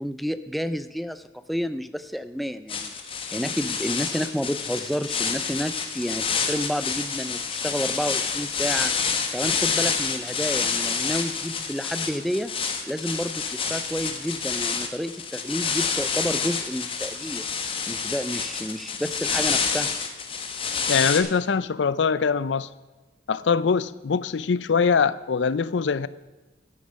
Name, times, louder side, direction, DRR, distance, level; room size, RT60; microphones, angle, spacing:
voice 1, 0.0-8.9 9.3-12.5 12.9-17.5 17.9-19.9, equal, ahead, 11 dB, 0.3 m, -30 dB
sound 1, 2.7-21.2, left 6 dB, 30° left, 1.0 m, -28 dB
voice 2, 20.9-22.7 23.3-26.1, left 5 dB, 80° left, 17 dB, 0.5 m, -23 dB
12.0 x 6.8 x 6.3 m, 1.2 s
head